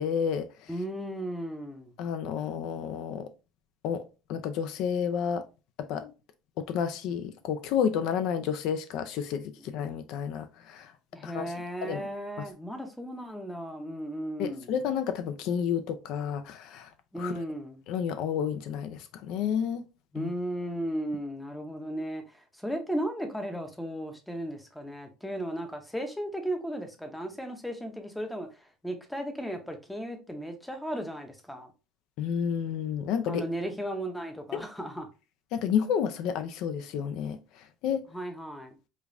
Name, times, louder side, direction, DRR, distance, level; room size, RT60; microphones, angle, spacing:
voice 1, 0.0-0.7 2.0-3.3 3.8-4.0 4.3-5.4 5.8-6.1 6.6-10.9 11.2-11.5 11.8-12.1 12.4-12.5 14.4-17.4 17.9-19.8 20.2-20.3 32.2-33.4 34.5-34.6 35.5-38.0, left 8 dB, 60° left, 0.4 m, -31 dB
voice 2, 0.7-1.9 11.1-14.7 17.1-17.8 20.1-31.7 33.3-35.1 38.1-38.7, right 1 dB, 5° left, 0.6 m, -35 dB
5.0 x 2.3 x 2.5 m
cardioid pair, 155°, 0 cm